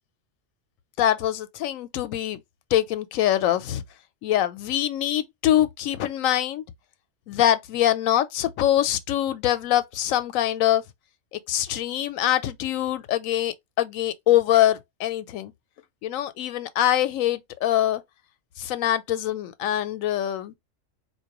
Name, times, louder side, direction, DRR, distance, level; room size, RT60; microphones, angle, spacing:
voice 1, 1.0-2.4 2.7-3.8 4.2-6.6 7.3-10.8 11.3-15.5 16.0-18.0 18.6-20.5, left 12 dB, 90° left, 1.0 m, -24 dB
4.3 x 2.6 x 2.9 m
omnidirectional pair, 1.4 m